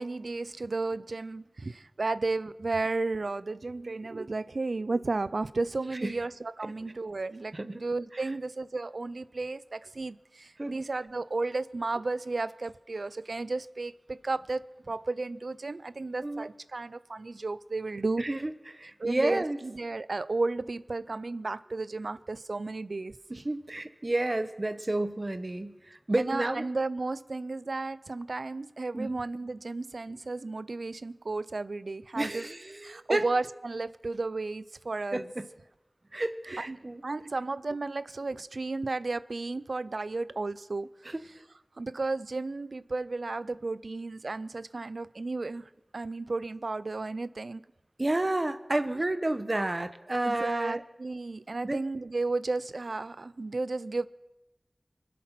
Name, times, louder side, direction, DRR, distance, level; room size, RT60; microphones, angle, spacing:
voice 1, 0.0-18.2 19.0-23.2 26.2-32.5 32.8-35.3 36.5-41.1 41.8-45.6 45.9-47.6 50.2-54.1, right 3 dB, 90° right, 0.5 m, -33 dB
voice 2, 18.2-19.6 23.3-26.7 28.9-29.2 32.2-33.2 35.1-35.5 36.1-37.0 41.0-41.2 48.0-50.8 51.6-51.8, right 2 dB, 45° right, 1.0 m, -31 dB
25.0 x 8.5 x 6.0 m
wide cardioid pair, 45°, 0 cm